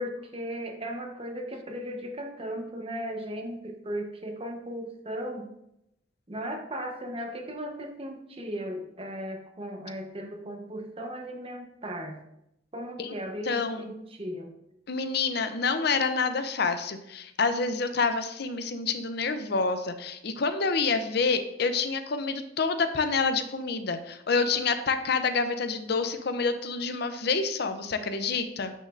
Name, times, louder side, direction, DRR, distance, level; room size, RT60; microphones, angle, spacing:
voice 1, 0.0-5.5 6.3-12.2 12.7-14.5, equal, 30° right, 3 dB, 1.0 m, -36 dB
voice 2, 13.5-13.9 14.9-28.7, left 4 dB, 60° left, 9 dB, 0.6 m, -28 dB
9.1 x 6.6 x 2.5 m, 0.80 s
head